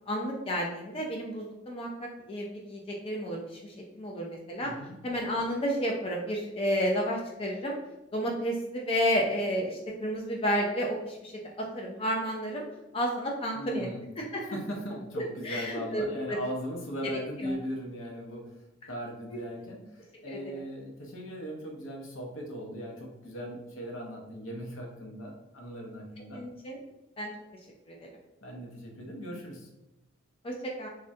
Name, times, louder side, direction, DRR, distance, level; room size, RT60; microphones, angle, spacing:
voice 1, 0.1-4.7 5.0-7.7 8.1-11.3 11.6-12.6 12.9-13.9 14.3-14.4 15.2-16.4 17.4-17.5 20.3-20.4 26.3-26.8 27.2-27.3 27.9-28.0 30.4-30.9, equal, 30° left, -1 dB, 0.3 m, -31 dB
voice 2, 4.6-5.0 13.5-14.1 14.4-26.4 28.4-29.7, equal, 75° left, 0 dB, 0.7 m, -39 dB
3.5 x 2.1 x 2.6 m, 0.97 s
head